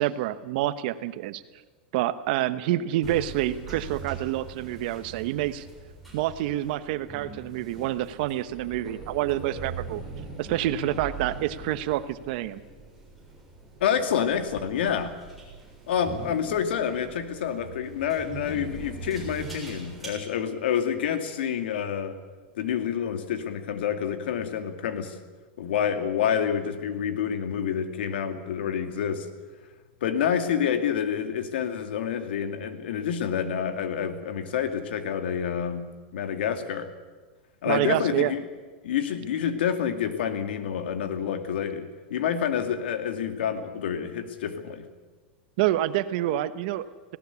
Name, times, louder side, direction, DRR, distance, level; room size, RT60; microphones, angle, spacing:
voice 1, 0.0-1.4 1.9-5.7 6.1-10.0 10.4-12.6 37.6-38.3 45.6-46.8, right 14 dB, 60° right, 13 dB, 1.1 m, -27 dB
sound 1, 3.0-20.1, right 4 dB, ahead, 6.9 m, -41 dB
voice 2, 13.8-15.1 15.9-22.2 22.6-25.2 25.6-29.3 30.0-36.9 37.6-38.4 38.8-44.8, left 8 dB, 80° left, 8 dB, 2.4 m, -28 dB
19.5 x 17.5 x 8.3 m, 1.4 s
supercardioid pair, 140°, 6 cm